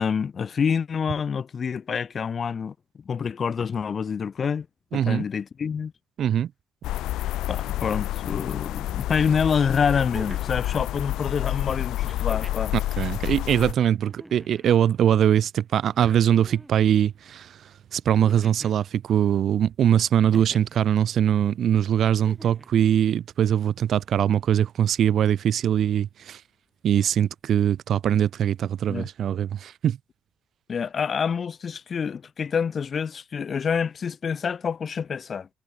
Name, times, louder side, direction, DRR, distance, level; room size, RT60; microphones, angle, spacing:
voice 1, 0.0-2.7 3.1-4.7 4.9-5.9 7.5-12.7 28.9-29.1 30.7-35.5, left 6 dB, 45° left, 0.7 m, -27 dB
voice 2, 4.9-5.3 6.2-6.5 12.7-26.4 26.8-30.0, right 9 dB, 65° right, 0.4 m, -22 dB
sound 1, 6.8-13.7, left 14 dB, 85° left, 0.3 m, -29 dB
sound 2, 8.8-8.9 9.9-10.6 12.0-12.7 14.0-14.7 15.9-16.7 18.1-18.8 20.3-20.8 22.1-22.7 24.0-24.1, right 1 dB, 10° right, 5.1 m, -43 dB
cardioid pair, 90°, 0 cm